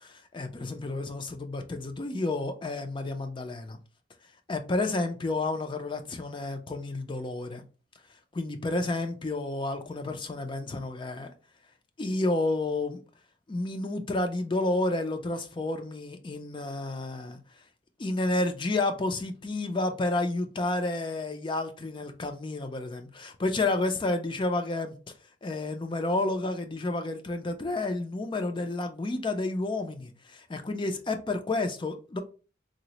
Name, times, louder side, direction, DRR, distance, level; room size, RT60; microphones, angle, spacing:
voice 1, 0.0-3.8 4.5-7.6 8.3-11.3 12.0-13.0 13.5-17.4 18.0-24.9 25.4-32.2, left 2 dB, 25° left, 0.4 m, -30 dB
3.9 x 2.0 x 2.9 m
head